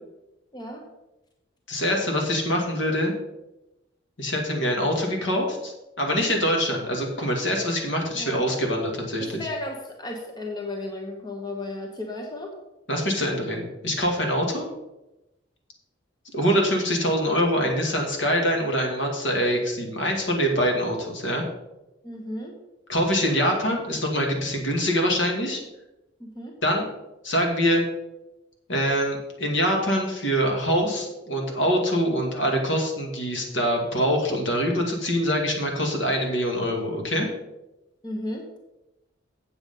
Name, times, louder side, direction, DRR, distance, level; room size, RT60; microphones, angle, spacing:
voice 1, 0.5-0.8 8.1-8.5 9.2-12.5 22.0-22.5 26.2-26.6 38.0-38.5, left 1 dB, 20° left, 1 dB, 1.1 m, -34 dB
voice 2, 1.7-3.1 4.2-9.4 12.9-14.7 16.3-21.4 22.9-25.6 26.6-26.9 27.2-27.8 28.7-37.3, equal, 70° left, 1 dB, 2.1 m, -24 dB
8.0 x 7.9 x 5.4 m, 0.96 s
head